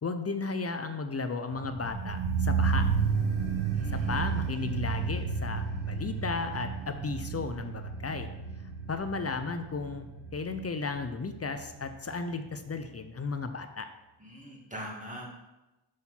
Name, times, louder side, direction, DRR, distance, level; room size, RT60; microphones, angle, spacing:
voice 1, 0.0-2.8 4.1-8.3 8.9-10.1 10.3-13.9, left 4 dB, 35° left, 8 dB, 0.5 m, -34 dB
sound 1, 1.5-12.5 12.8-12.9, right 5 dB, 65° right, 1.5 m, -32 dB
voice 2, 3.7-4.3 14.2-15.3, equal, 15° right, -1 dB, 1.7 m, -42 dB
6.3 x 4.3 x 5.6 m, 1.0 s
wide cardioid pair, 105°, 46 cm